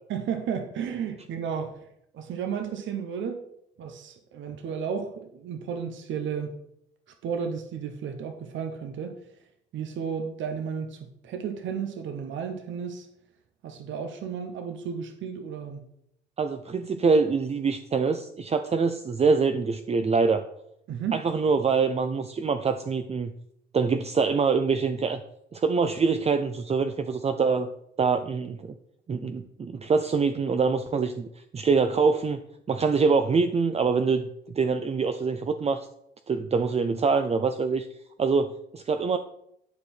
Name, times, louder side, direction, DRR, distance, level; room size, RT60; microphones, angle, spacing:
voice 1, 0.1-1.8 2.1-3.4 3.8-6.6 7.2-9.1 9.7-13.1 13.6-15.9 20.9-21.2, right 7 dB, 70° right, 6 dB, 1.0 m, -33 dB
voice 2, 16.4-20.4 21.1-23.3 23.7-25.2 25.5-27.7 28.0-28.7 29.1-31.3 31.5-32.4 32.7-35.9 36.3-37.9 38.2-39.2, right 5 dB, 30° right, 8 dB, 0.6 m, -24 dB
11.0 x 4.7 x 4.4 m, 0.75 s
cardioid pair, 90°, 20 cm